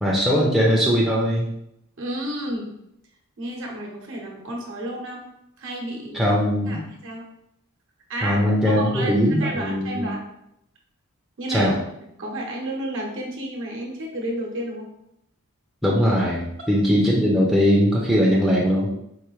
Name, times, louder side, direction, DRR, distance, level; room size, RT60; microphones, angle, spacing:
voice 1, 0.0-1.5 6.1-6.8 8.2-10.1 11.5-11.8 15.8-18.9, equal, ahead, -5 dB, 0.5 m, -20 dB
voice 2, 2.0-2.7 3.4-5.3 5.6-6.4 6.7-7.3 8.1-10.2 11.4-11.8 12.2-14.9, right 1 dB, 60° right, 0 dB, 0.9 m, -31 dB
4.6 x 2.7 x 3.1 m, 0.79 s
head